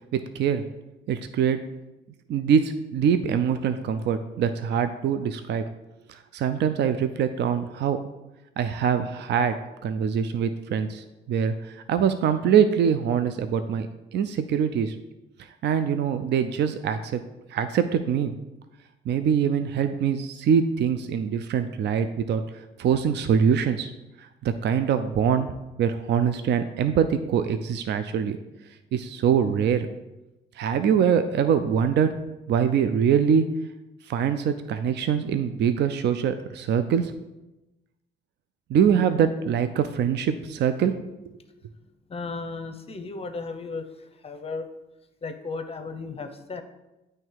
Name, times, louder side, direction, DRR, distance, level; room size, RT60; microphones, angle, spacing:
voice 1, 0.1-0.6 1.1-1.6 2.3-5.6 6.1-8.0 8.6-9.6 9.8-15.0 15.6-17.2 17.5-18.3 19.1-22.4 22.8-23.9 24.2-25.5 25.8-28.4 28.9-29.9 30.6-32.1 32.5-33.5 34.1-37.1 38.7-40.9, right 7 dB, 60° right, 10 dB, 0.4 m, -24 dB
voice 2, 42.1-44.7 45.2-46.6, left 4 dB, 30° left, 7 dB, 0.7 m, -35 dB
8.9 x 3.2 x 4.6 m, 1.0 s
cardioid pair, 90°, 20 cm